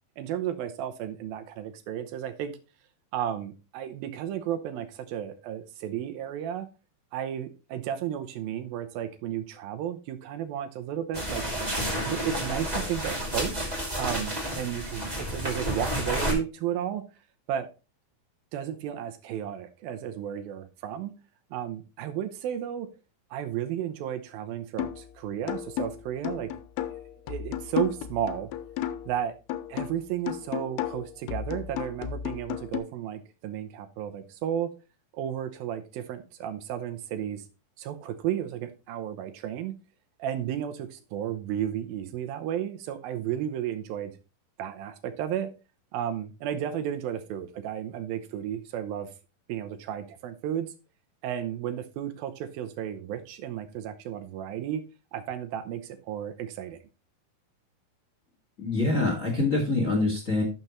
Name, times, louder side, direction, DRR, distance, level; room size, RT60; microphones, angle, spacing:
voice 1, 0.2-2.5 3.1-6.7 7.1-11.4 12.1-17.0 17.5-17.7 18.5-21.1 21.5-22.9 23.3-26.5 27.3-28.5 29.1-29.4 29.7-34.7 35.1-37.4 37.8-39.7 40.2-44.1 44.6-45.5 45.9-49.1 49.5-50.7 51.2-54.8 55.1-56.8, right 10 dB, 75° right, 10 dB, 2.4 m, -33 dB
sound 1, 11.1-16.3, equal, 15° right, 2.0 m, -31 dB
sound 2, 24.8-25.1 25.5-29.2 29.5-32.8, left 11 dB, 85° left, 2.7 m, -34 dB
voice 2, 58.6-60.4, left 2 dB, 30° left, 1 dB, 1.4 m, -25 dB
11.5 x 6.8 x 3.1 m, 0.30 s
omnidirectional pair, 4.7 m